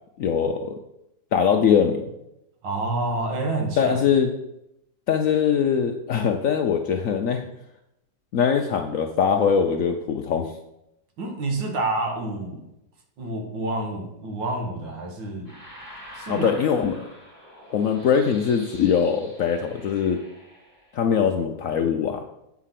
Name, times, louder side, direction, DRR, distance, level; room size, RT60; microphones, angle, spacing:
voice 1, 0.2-0.8 1.3-2.0 3.8-4.3 5.1-7.5 8.3-10.5 16.3-17.0 17.7-20.2 20.9-22.2, left 7 dB, 70° left, 4 dB, 0.8 m, -22 dB
voice 2, 2.6-4.0 11.2-12.6 13.2-15.5 16.1-16.5, right 2 dB, 90° right, 2 dB, 2.1 m, -28 dB
sound 1, 15.4-21.1, equal, 10° right, 2.4 m, -45 dB
8.2 x 4.9 x 5.8 m, 0.86 s
omnidirectional pair, 2.0 m